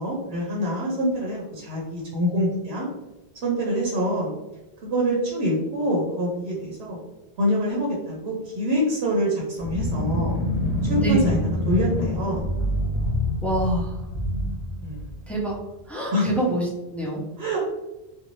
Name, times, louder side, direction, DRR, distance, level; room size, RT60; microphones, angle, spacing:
voice 1, 0.0-2.8 3.4-4.3 4.8-7.0 7.4-10.4 10.9-11.4 11.7-12.4 14.8-15.1 16.1-16.3 17.4-17.7, equal, 80° right, -3 dB, 0.9 m, -25 dB
sound 1, 9.6-15.6, left 1 dB, 85° left, 0.9 m, -26 dB
voice 2, 11.0-11.4 13.4-14.0 15.3-15.6 15.9-17.2, right 2 dB, ahead, -4 dB, 0.4 m, -25 dB
2.6 x 2.3 x 3.0 m, 0.98 s
omnidirectional pair, 1.1 m